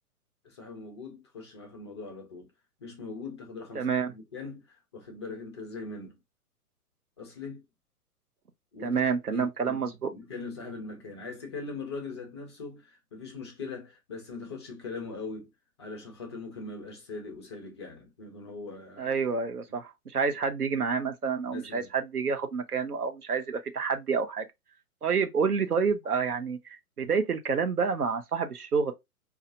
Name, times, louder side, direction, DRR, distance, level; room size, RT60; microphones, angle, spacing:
voice 1, 0.4-2.5 2.8-6.2 7.2-7.6 8.7-9.0 9.3-15.5 15.8-19.1 21.5-21.9, left 3 dB, 20° left, 0.4 m, -41 dB
voice 2, 3.7-4.1 8.8-9.9 19.0-24.5 25.0-28.9, right 5 dB, 80° right, 0.8 m, -28 dB
4.4 x 2.4 x 2.6 m
figure-of-eight pair, 115°, 44 cm